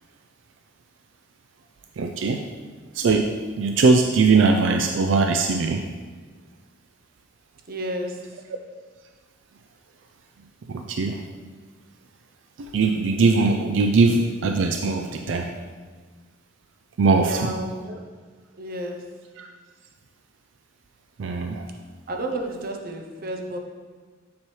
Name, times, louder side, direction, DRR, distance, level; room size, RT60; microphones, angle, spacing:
voice 1, 2.0-2.4 2.9-5.8 10.7-11.2 12.6-15.5 17.0-17.5 19.4-19.5 21.2-21.7, right 4 dB, 80° right, 4 dB, 0.4 m, -20 dB
voice 2, 7.7-8.2 17.2-18.1 18.6-19.1 22.1-23.6, right 1 dB, 50° right, 3 dB, 0.8 m, -31 dB
7.1 x 6.1 x 3.2 m, 1.5 s
head